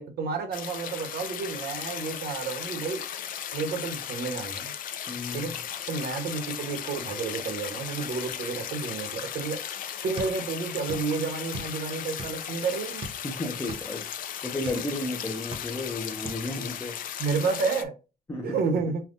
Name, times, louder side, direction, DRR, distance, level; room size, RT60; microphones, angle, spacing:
voice 1, 0.0-3.0 3.5-4.7 5.3-5.5 5.9-9.6 10.0-13.1 17.2-17.9 18.4-19.0, right 4 dB, 60° right, 1.1 m, -30 dB
sound 1, 0.5-17.8, left 9 dB, 50° left, 0.5 m, -36 dB
voice 2, 5.1-5.6 13.2-17.0 18.3-18.8, left 2 dB, 15° left, 0.7 m, -34 dB
sound 2, 10.2-11.1 11.4-12.5 13.0-14.9 15.3-16.0 16.3-16.4, right 2 dB, 30° right, 0.9 m, -39 dB
5.7 x 2.3 x 2.6 m
cardioid pair, 160°, 18 cm